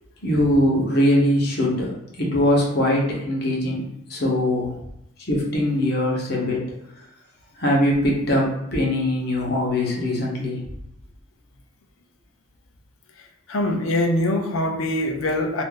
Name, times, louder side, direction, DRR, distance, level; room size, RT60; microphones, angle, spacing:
voice 1, 0.2-1.9 2.2-4.8 5.3-6.6 7.6-10.6, left 1 dB, 50° left, -3 dB, 0.9 m, -21 dB
voice 2, 13.5-15.6, left 1 dB, 85° left, 4 dB, 0.6 m, -23 dB
2.6 x 2.5 x 3.7 m, 0.81 s
head